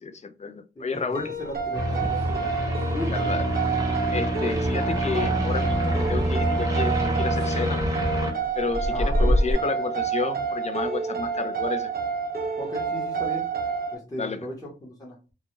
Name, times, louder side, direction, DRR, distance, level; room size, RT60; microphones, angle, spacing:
voice 1, 0.0-1.3 3.1-3.5 4.1-7.8 8.6-11.9 14.2-14.4, left 4 dB, 40° left, 8 dB, 0.4 m, -31 dB
voice 2, 0.8-1.1 1.4-2.6 2.9-3.4 8.9-9.3 12.6-13.4 13.9-15.2, left 1 dB, 20° left, -4 dB, 0.8 m, -36 dB
sound 1, 1.1-14.0, right 5 dB, 55° right, 0.6 m, -29 dB
sound 2, 1.5-2.9 3.2-3.6 3.9-4.0 4.5-9.5, equal, 70° left, 0.9 m, -30 dB
sound 3, 1.7-8.3, equal, 15° right, 0.7 m, -26 dB
2.2 x 2.1 x 3.0 m, 0.31 s
wide cardioid pair, 75°, 19 cm